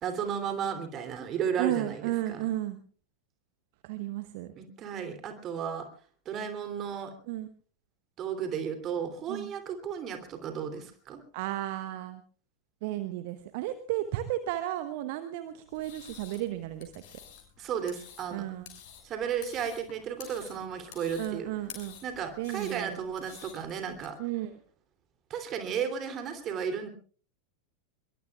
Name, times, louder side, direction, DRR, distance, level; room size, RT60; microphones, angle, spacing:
voice 1, 0.0-2.5 4.6-5.9 6.2-7.1 8.2-11.2 17.6-18.4 19.0-21.5 22.0-24.2 25.3-26.9, right 7 dB, 30° right, 7 dB, 3.0 m, -34 dB
voice 2, 1.6-2.8 3.8-4.5 7.3-7.5 9.3-9.5 11.3-12.2 12.8-16.9 18.3-18.7 21.2-22.0 22.4-23.0 24.2-24.5, right 14 dB, 50° right, 11 dB, 1.0 m, -33 dB
sound 1, 15.7-24.1, left 9 dB, 50° left, 7.0 m, -50 dB
25.5 x 22.5 x 2.4 m, 0.43 s
figure-of-eight pair, 90°, 0 cm